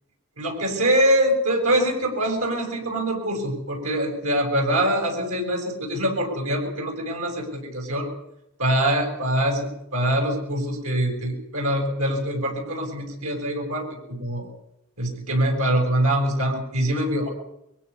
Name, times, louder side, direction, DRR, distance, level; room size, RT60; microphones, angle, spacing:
voice 1, 0.4-8.1 8.6-14.5 15.0-17.3, right 1 dB, 80° right, 2 dB, 7.9 m, -24 dB
23.5 x 16.5 x 8.6 m, 0.80 s
head